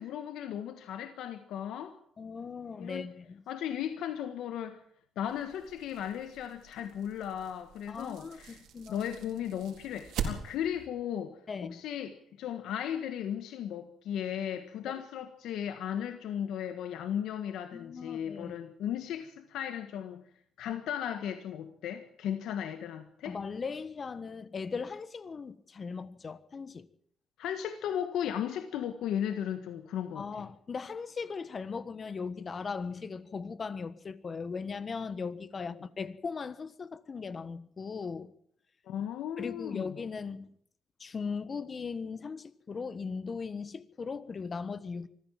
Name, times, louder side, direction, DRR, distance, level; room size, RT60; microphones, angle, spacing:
voice 1, 0.0-2.0 2.8-3.1 3.5-4.8 5.1-11.4 11.7-20.2 20.6-23.4 27.4-30.5 35.7-35.8 38.9-39.9, left 9 dB, 85° left, 1.6 m, -36 dB
voice 2, 2.2-3.4 7.9-9.1 11.5-11.8 17.7-18.5 23.2-26.9 30.1-38.3 39.4-40.5 41.0-45.1, left 5 dB, 40° left, 1.4 m, -38 dB
sound 1, 5.3-10.9, right 6 dB, 85° right, 4.2 m, -42 dB
24.5 x 14.5 x 7.6 m
cardioid pair, 90°, 0 cm